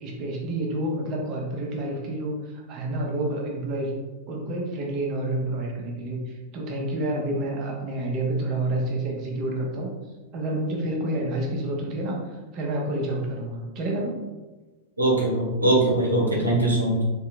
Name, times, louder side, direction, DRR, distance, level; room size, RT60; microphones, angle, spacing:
voice 1, 0.0-3.9 4.3-9.9 10.3-14.2 16.2-16.6, right 1 dB, 40° right, -1 dB, 0.9 m, -29 dB
voice 2, 15.0-17.0, right 1 dB, 80° right, -2 dB, 1.0 m, -21 dB
3.6 x 2.8 x 3.3 m, 1.2 s
figure-of-eight pair, 90°, 0 cm